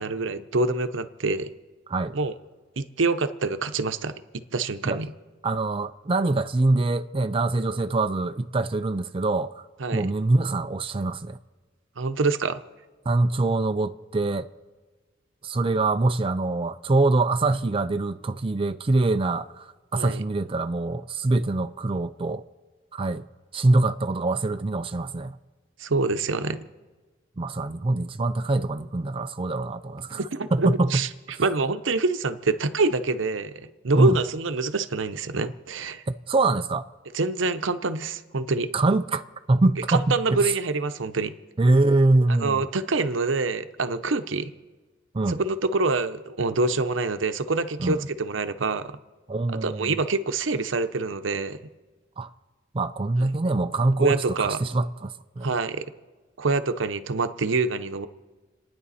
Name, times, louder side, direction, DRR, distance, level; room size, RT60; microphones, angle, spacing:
voice 1, 0.0-1.5 2.1-2.3 2.8-4.2 4.5-5.1 9.8-10.1 12.0-12.6 19.9-20.2 25.8-26.7 30.1-31.1 31.4-36.0 37.1-38.7 39.9-41.3 42.3-44.5 45.3-49.0 49.5-51.6 53.2-53.3 54.0-54.6 55.4-55.8 56.4-58.1, right 3 dB, 85° right, 0.8 m, -26 dB
voice 2, 5.4-9.6 9.9-11.4 13.1-14.5 15.4-22.4 22.9-23.2 23.5-25.4 27.4-30.2 30.5-31.0 33.9-34.2 36.1-36.9 38.7-40.5 41.6-42.6 45.1-45.4 47.8-48.1 49.3-50.0 52.2-52.3 52.7-55.5, right 2 dB, 30° right, 0.5 m, -24 dB
29.5 x 9.8 x 4.2 m
head